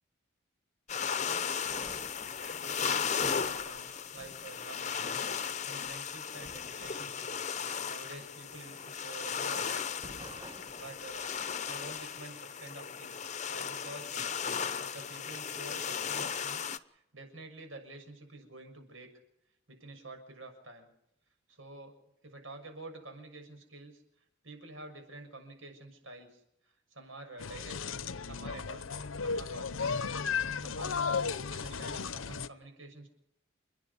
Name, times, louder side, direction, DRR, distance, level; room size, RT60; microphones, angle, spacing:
sound 1, 0.9-16.8, left 7 dB, 35° left, 0.8 m, -36 dB
sound 2, 1.7-9.7 10.0-12.3, right 1 dB, 25° right, 1.2 m, -54 dB
voice 1, 2.4-11.3 11.6-14.3 14.8-19.1 19.7-20.9 21.5-21.9 22.2-24.0 24.4-27.8 28.2-33.1, right 2 dB, 85° right, 5 dB, 6.7 m, -49 dB
sound 3, 27.4-32.5, left 5 dB, 90° left, 0.9 m, -34 dB
29.5 x 10.5 x 9.7 m, 0.83 s
head